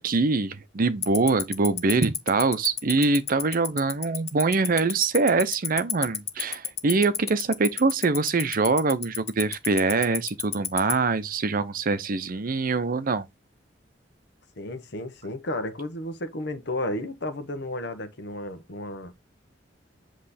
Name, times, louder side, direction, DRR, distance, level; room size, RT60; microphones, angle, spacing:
voice 1, 0.0-13.3, right 3 dB, 50° right, 0.6 m, -24 dB
Tick-tock, 1.0-10.9, left 10 dB, 35° left, 0.7 m, -27 dB
voice 2, 14.6-19.1, left 1 dB, 65° left, 1.1 m, -33 dB
7.6 x 3.1 x 4.1 m
head